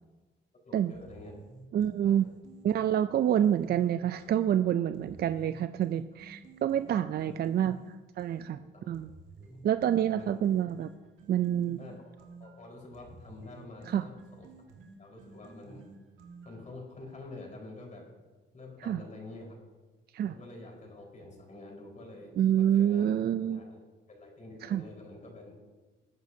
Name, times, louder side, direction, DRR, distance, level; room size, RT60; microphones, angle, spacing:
voice 1, 0.6-1.4 2.0-2.3 6.1-6.2 7.3-7.5 8.6-8.9 9.4-9.6 9.9-10.4 11.8-12.0 12.4-14.5 15.0-15.9 16.4-18.0 18.5-19.6 20.3-23.1 23.4-23.8 24.1-25.6, left 2 dB, 40° left, -1 dB, 4.5 m, -47 dB
sound 1, 0.9-4.5 4.9-8.5 8.9-16.7, right 3 dB, 80° right, 1.9 m, -52 dB
voice 2, 1.7-2.3 2.6-7.8 8.2-8.6 8.9-9.1 9.6-10.9 11.3-11.8 13.9-14.0 18.8-19.0 20.1-20.3 22.4-23.6 24.6-24.8, right 10 dB, 50° right, 11 dB, 0.4 m, -27 dB
20.5 x 9.4 x 2.8 m, 1.3 s
cardioid pair, 90°, 20 cm